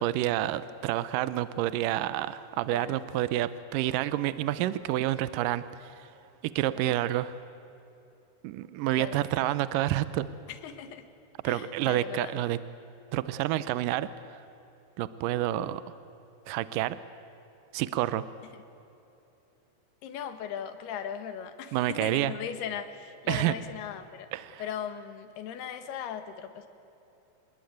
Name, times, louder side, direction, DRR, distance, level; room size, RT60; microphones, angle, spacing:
voice 1, 0.0-6.1 6.4-7.3 8.4-10.3 11.4-12.6 13.1-14.4 15.0-15.8 16.5-17.0 17.7-18.3 21.7-22.3 23.3-23.5 24.3-24.6, right 14 dB, 80° right, 14 dB, 1.9 m, -29 dB
voice 2, 10.5-11.1 11.4-12.3 18.5-18.6 20.0-24.3 24.6-26.7, left 8 dB, 80° left, 9 dB, 3.4 m, -38 dB
27.5 x 20.0 x 9.3 m, 2.9 s
omnidirectional pair, 4.6 m